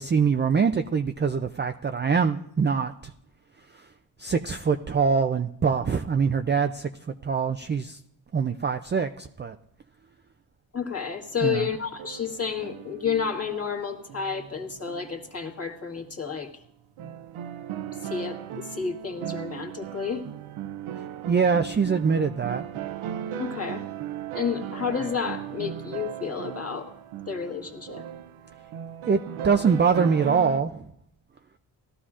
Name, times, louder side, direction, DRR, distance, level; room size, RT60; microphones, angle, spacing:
voice 1, 0.0-3.1 3.7-3.9 4.2-8.0 8.3-9.6 11.4-11.7 21.3-22.6 29.1-30.9, right 5 dB, 25° right, 6 dB, 0.3 m, -24 dB
voice 2, 10.7-16.5 18.0-20.2 23.3-23.8 24.3-26.9 27.3-28.0, left 6 dB, 30° left, 0 dB, 1.6 m, -31 dB
sound 1, 11.0-15.5 16.1-16.2 17.0-30.6, right 9 dB, 85° right, 0.6 m, -37 dB
18.0 x 12.5 x 2.5 m, 0.74 s
cardioid pair, 80°, 48 cm